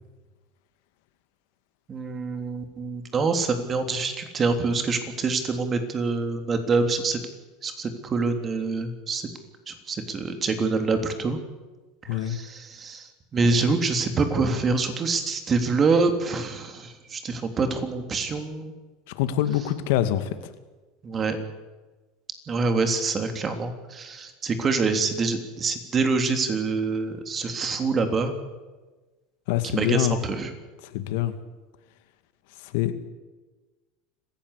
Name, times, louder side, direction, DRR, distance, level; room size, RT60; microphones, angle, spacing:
voice 1, 1.9-7.2 7.6-9.3 9.7-11.4 12.1-18.7 21.0-21.4 22.5-28.3 29.7-30.5, right 4 dB, 25° right, 7 dB, 3.3 m, -26 dB
voice 2, 12.1-12.4 19.2-20.3 29.5-30.2 30.8-31.3 32.6-33.1, left 12 dB, 75° left, 10 dB, 2.2 m, -25 dB
26.0 x 15.5 x 8.4 m, 1.2 s
supercardioid pair, 125°, 0 cm